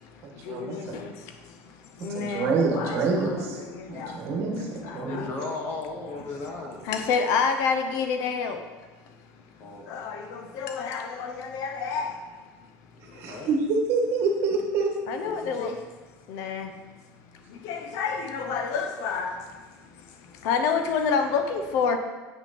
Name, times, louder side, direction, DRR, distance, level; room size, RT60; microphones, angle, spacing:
voice 1, 0.5-1.0 2.1-3.6 3.9-5.2 13.1-14.9, right 4 dB, 50° right, 1.6 m, -26 dB
voice 2, 2.0-2.5 2.8-3.0 5.1-5.3 6.9-8.6 9.9-10.0 10.6-11.3 11.5-12.1 15.1-15.7 16.3-16.7 17.7-19.3 20.5-22.0, left 5 dB, 65° left, 0.7 m, -27 dB
voice 3, 5.0-6.8 9.6-9.9 13.3-13.5, left 2 dB, 40° left, 1.5 m, -35 dB
8.4 x 6.1 x 4.2 m
cardioid pair, 165°, 6 cm